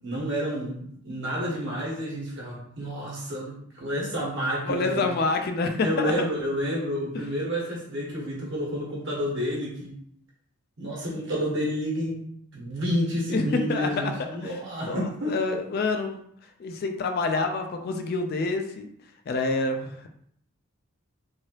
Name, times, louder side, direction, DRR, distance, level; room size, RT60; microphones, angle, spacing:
voice 1, 0.0-5.1 5.8-9.9 10.8-12.2 12.5-15.3, equal, 55° right, -5 dB, 1.1 m, -30 dB
voice 2, 4.7-6.3 13.3-14.6 14.8-16.2 16.6-18.9 19.3-20.1, left 3 dB, 45° left, 5 dB, 0.3 m, -27 dB
3.1 x 2.7 x 2.9 m, 0.69 s
head